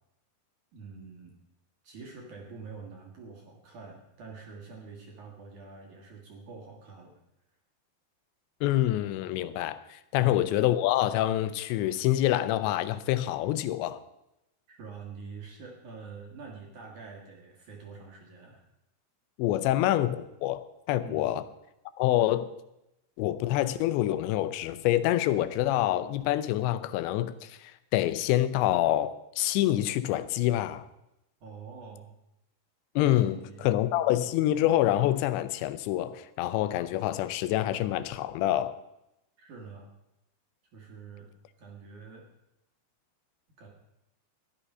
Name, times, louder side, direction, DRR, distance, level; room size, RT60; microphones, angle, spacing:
voice 1, 0.7-1.3 1.8-7.2 10.1-10.5 14.7-18.6 21.0-21.3 31.4-32.1 33.1-33.7 39.4-39.9 40.7-41.3 41.6-42.3 43.6-43.7, right 5 dB, 60° right, 2.4 m, -46 dB
voice 2, 8.6-14.0 19.4-21.4 22.0-22.5 23.2-30.9 33.0-38.7, left 14 dB, 90° left, 3.0 m, -26 dB
13.0 x 10.0 x 5.5 m
omnidirectional pair, 5.0 m